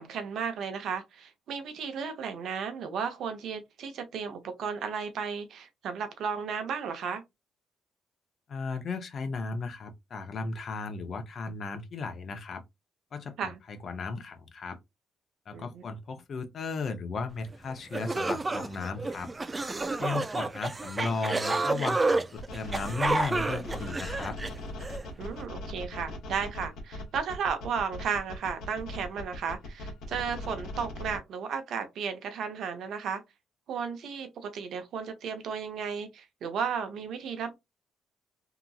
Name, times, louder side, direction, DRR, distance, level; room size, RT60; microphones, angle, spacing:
voice 1, 0.0-7.2 13.4-13.6 15.5-15.8 25.2-33.2 33.7-37.5, right 6 dB, 70° right, 0.7 m, -34 dB
voice 2, 8.5-12.6 13.1-14.8 15.5-19.3 20.0-24.4, left 4 dB, 55° left, 0.7 m, -35 dB
sound 1, 17.5-17.6 17.9-25.0, right 3 dB, 25° right, 0.3 m, -30 dB
sound 2, 22.4-31.2, left 1 dB, 80° left, 1.0 m, -39 dB
2.9 x 2.6 x 2.3 m
cardioid pair, 90°, 0 cm